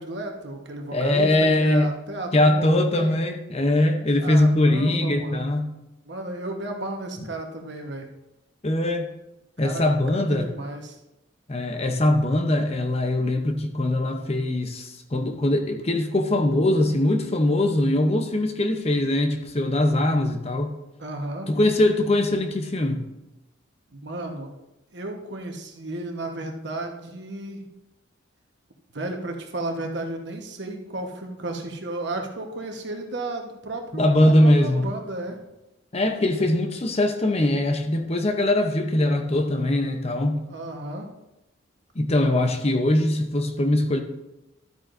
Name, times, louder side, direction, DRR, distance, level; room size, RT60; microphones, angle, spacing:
voice 1, 0.0-3.2 4.2-5.5 6.1-8.1 9.6-9.8 10.1-11.0 21.0-21.5 23.9-24.6 24.9-27.7 28.9-35.4 40.5-41.1, right 2 dB, 55° right, 3 dB, 1.2 m, -33 dB
voice 2, 0.9-1.9 2.3-5.7 8.6-9.1 9.6-10.5 11.5-20.7 21.5-23.1 33.9-34.9 35.9-40.5 41.9-44.0, left 1 dB, 30° left, 5 dB, 0.7 m, -22 dB
12.0 x 8.8 x 2.6 m, 0.93 s
head